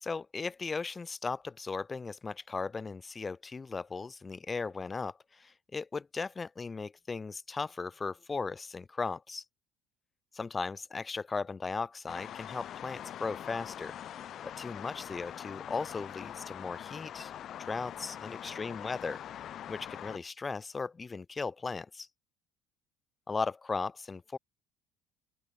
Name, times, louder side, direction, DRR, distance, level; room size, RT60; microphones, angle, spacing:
voice 1, 0.0-9.4 10.3-14.0 14.4-17.3 17.6-19.2 19.7-22.1 23.3-24.4, left 4 dB, 25° left, 0.7 m, -37 dB
sound 1, 12.1-20.2, left 10 dB, 50° left, 2.5 m, -43 dB
open air
supercardioid pair, 90°, 0 cm